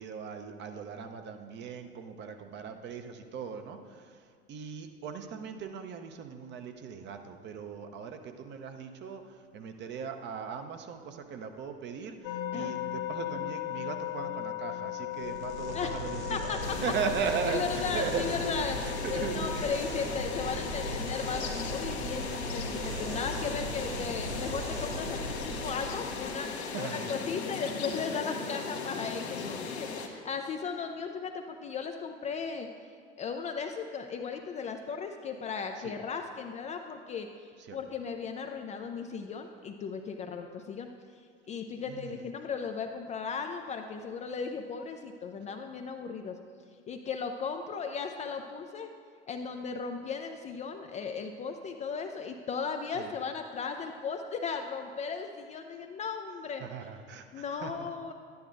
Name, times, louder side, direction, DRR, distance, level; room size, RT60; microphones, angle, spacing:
voice 1, 0.0-16.5 16.8-18.3 18.8-19.5 26.7-27.1 35.8-36.0 37.7-37.8 41.9-42.3 52.9-53.1 56.6-57.9, right 6 dB, 35° right, 6 dB, 0.7 m, -38 dB
sound 1, 12.2-27.2, left 15 dB, 55° left, 0.7 m, -40 dB
sound 2, 15.1-26.6, right 1 dB, 85° right, 1.2 m, -38 dB
voice 2, 16.3-16.8 17.5-32.7 33.2-46.4 46.9-48.9 49.3-56.6 57.3-58.1, left 5 dB, 20° left, 5 dB, 0.4 m, -36 dB
sound 3, 16.6-30.1, left 5 dB, 75° left, 1.0 m, -38 dB
11.5 x 9.3 x 2.6 m, 2.2 s
figure-of-eight pair, 75°, 33 cm